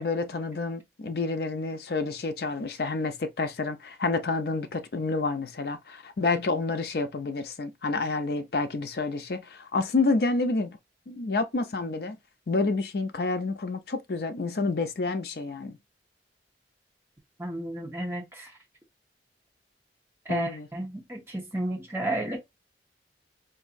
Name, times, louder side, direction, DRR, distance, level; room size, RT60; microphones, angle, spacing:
voice 1, 0.0-10.8 11.1-12.2 12.5-15.8 20.3-20.7, left 3 dB, 60° left, 0.5 m, -29 dB
voice 2, 17.4-18.5 20.3-22.4, right 1 dB, 15° right, 1.0 m, -32 dB
4.1 x 2.6 x 2.5 m
head